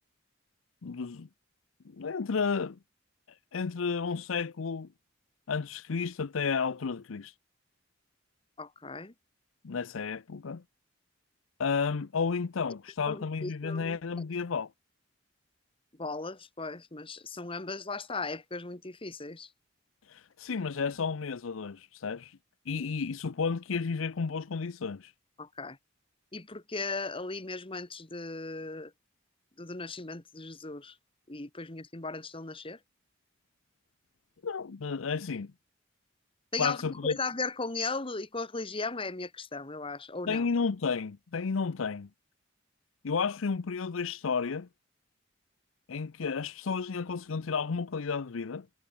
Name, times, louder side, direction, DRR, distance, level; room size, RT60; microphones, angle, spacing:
voice 1, 0.8-1.3 1.8-2.8 3.5-4.9 5.5-7.3 9.6-10.6 11.6-14.7 20.1-22.4 22.7-25.1 34.4-35.5 36.6-37.2 40.3-42.1 43.0-44.7 45.9-48.7, left 5 dB, 85° left, 0.6 m, -32 dB
voice 2, 8.6-9.1 13.1-14.0 16.0-19.5 25.4-25.8 26.3-28.9 29.6-30.9 31.3-32.8 36.5-40.5, left 3 dB, 25° left, 1.6 m, -37 dB
head